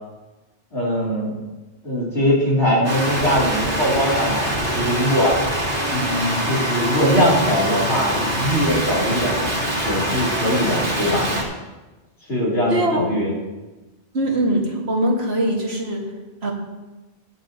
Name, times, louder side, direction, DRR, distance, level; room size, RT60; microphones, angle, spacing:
voice 1, 0.7-1.4 1.8-5.4 5.9-9.4 9.8-11.3 12.3-13.3, equal, 70° left, -7 dB, 3.3 m, -21 dB
sound 1, 2.8-11.4, equal, 85° right, 2.9 m, -24 dB
voice 2, 12.7-13.0 14.1-16.1 16.4-16.5, right 1 dB, 70° right, -1 dB, 2.2 m, -21 dB
23.0 x 7.9 x 2.9 m, 1.1 s
omnidirectional pair, 1.1 m